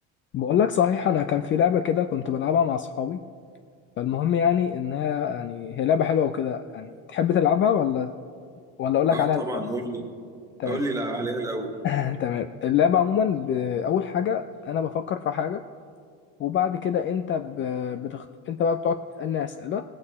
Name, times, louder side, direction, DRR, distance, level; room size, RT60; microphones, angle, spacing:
voice 1, 0.3-3.2 4.0-8.1 8.8-9.6 10.6-10.8 11.8-15.6 16.4-19.8, left 8 dB, 35° left, 10 dB, 0.4 m, -24 dB
voice 2, 9.1-10.1 10.6-11.7, right 2 dB, 10° right, 2 dB, 1.8 m, -29 dB
18.5 x 8.8 x 4.2 m, 2.2 s
supercardioid pair, 115°, 33 cm